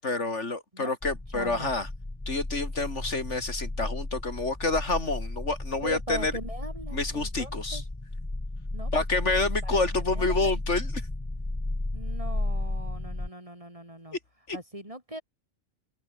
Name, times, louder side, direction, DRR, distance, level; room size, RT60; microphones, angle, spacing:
voice 1, 0.0-1.9 2.3-6.3 6.9-7.8 8.9-10.9 14.5-14.6, left 3 dB, 65° left, 3.4 m, -28 dB
sound 1, 1.0-13.3, left 2 dB, 15° left, 1.3 m, -33 dB
voice 2, 1.3-1.8 5.8-7.8 8.7-9.8 10.2-10.5 11.9-14.2 14.5-15.2, right 1 dB, 25° right, 5.5 m, -40 dB
open air
omnidirectional pair, 1.3 m